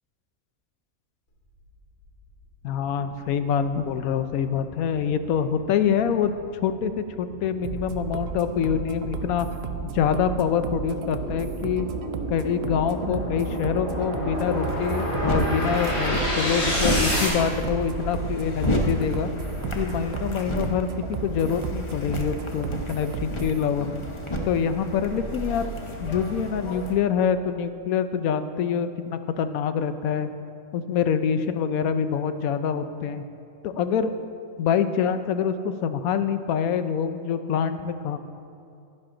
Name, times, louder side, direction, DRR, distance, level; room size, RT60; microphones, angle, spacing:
voice 1, 2.6-6.3 6.6-9.5 9.8-11.9 12.3-19.3 19.7-23.9 24.5-25.7 26.0-30.3 30.7-33.2 33.6-34.1 34.6-38.2, left 7 dB, 90° left, 10 dB, 1.1 m, -25 dB
sound 1, 2.6-2.7 3.2-17.3, left 1 dB, 70° left, 2.9 m, -31 dB
Fluffy Song Loop, 7.6-23.6, right 6 dB, 60° right, 0.7 m, -34 dB
sound 2, 14.3-26.9, equal, 25° left, 0.8 m, -31 dB
11.0 x 10.5 x 3.8 m, 2.5 s
omnidirectional pair, 1.4 m